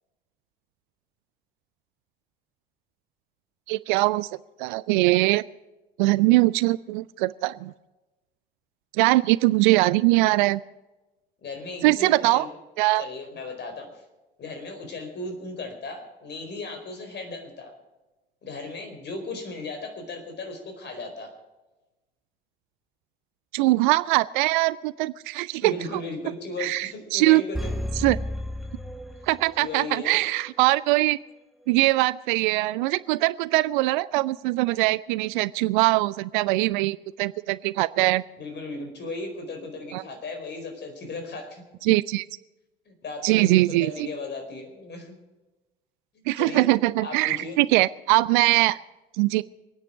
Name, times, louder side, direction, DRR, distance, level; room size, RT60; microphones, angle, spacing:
voice 1, 3.7-4.3 4.6-5.4 6.0-7.7 8.9-10.6 11.8-12.5 12.8-13.0 23.5-26.0 26.6-27.4 28.0-28.2 29.3-31.2 31.7-38.2 39.9-40.0 41.8-42.3 43.2-44.1 46.3-48.8 49.2-49.4, right 19 dB, 55° right, 20 dB, 0.5 m, -22 dB
voice 2, 11.4-12.5 13.0-13.9 14.4-17.7 18.4-21.3 25.6-27.7 29.2-29.3 29.6-30.2 38.4-41.6 42.9-45.1 46.4-46.7 47.0-47.6, left 2 dB, 35° left, 5 dB, 4.6 m, -36 dB
sound 1, 27.5-29.7 30.1-30.2, left 1 dB, ahead, 1.3 m, -32 dB
25.0 x 9.8 x 5.0 m, 1.1 s
figure-of-eight pair, 65°, 29 cm